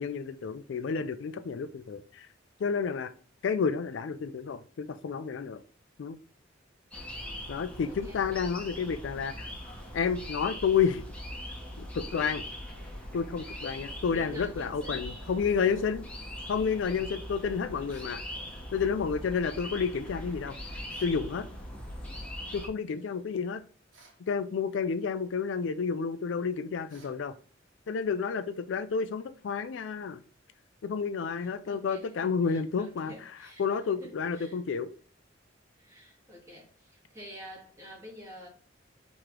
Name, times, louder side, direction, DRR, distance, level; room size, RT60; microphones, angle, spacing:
voice 1, 0.0-2.3 2.6-3.1 3.4-5.6 6.0-6.2 7.5-9.5 9.9-11.1 11.8-12.4 13.1-16.0 16.5-18.2 18.7-20.6 21.0-21.5 22.5-23.6 24.2-27.4 27.9-30.2 30.8-33.1 33.6-34.9, left 6 dB, 70° left, 0.4 m, -30 dB
sound 1, 6.9-22.7, left 1 dB, 5° left, 1.0 m, -41 dB
voice 2, 7.8-8.2 13.6-15.1 15.6-15.9 31.4-33.6 34.0-34.6 35.7-38.5, equal, 15° right, 1.8 m, -48 dB
sound 2, 17.9-18.2 20.9-21.2 23.9-24.3 26.9-27.2, right 3 dB, 90° right, 1.3 m, -58 dB
4.7 x 3.1 x 3.6 m
head